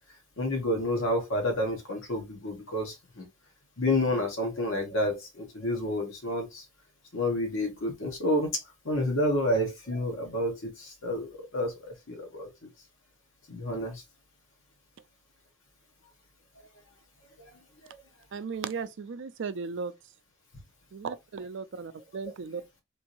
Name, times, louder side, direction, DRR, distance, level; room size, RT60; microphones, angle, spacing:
voice 1, 0.4-3.3 3.8-6.6 7.1-8.6 8.8-12.7 13.5-14.0 17.4-17.5, left 1 dB, 75° left, 1.2 m, -29 dB
voice 2, 18.3-19.9 20.9-22.6, right 5 dB, 65° right, 0.4 m, -36 dB
3.5 x 2.6 x 2.9 m
head